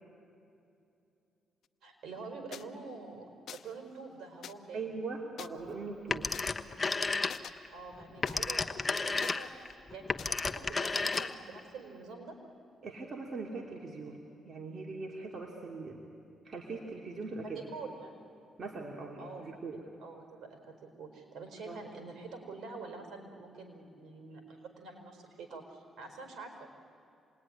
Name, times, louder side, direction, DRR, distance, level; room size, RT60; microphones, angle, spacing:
voice 1, 1.8-3.2 3.5-4.9 7.7-12.4 17.4-18.1 19.2-26.7, right 4 dB, 70° right, 4 dB, 4.6 m, -46 dB
sound 1, 2.5-2.6 3.5-3.8 4.4-4.5 5.4-5.5 6.3-6.4 7.3-7.5 8.3-8.4 9.2-9.7 10.2-10.3 11.1-11.3, left 9 dB, 65° left, 0.8 m, -46 dB
voice 2, 4.7-6.3 12.8-16.0 16.4-17.6 18.6-19.8 21.7-21.8, right 3 dB, 45° right, -1 dB, 2.7 m, -41 dB
Telephone, 6.1-7.7 8.0-11.6, left 3 dB, 25° left, 1.1 m, -32 dB
27.5 x 20.0 x 10.0 m, 2.7 s
cardioid pair, 90°, 0 cm